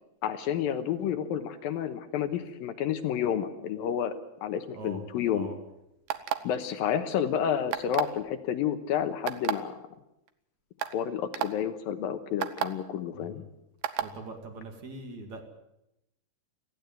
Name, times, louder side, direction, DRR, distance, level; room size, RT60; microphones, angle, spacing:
voice 1, 0.2-4.1 4.4-5.5 6.4-9.7 10.8-13.4, left 9 dB, 70° left, 10 dB, 2.6 m, -30 dB
sound 1, 6.1-6.6 7.7-8.2 9.3-9.5 10.3-10.4 10.8-10.9 11.3-11.5 12.4-12.7 13.8-14.1, right 12 dB, 70° right, 2.4 m, -29 dB
voice 2, 13.1-13.5 14.0-15.4, right 2 dB, 50° right, 4 dB, 3.1 m, -42 dB
18.5 x 15.5 x 9.4 m, 0.86 s
omnidirectional pair, 4.7 m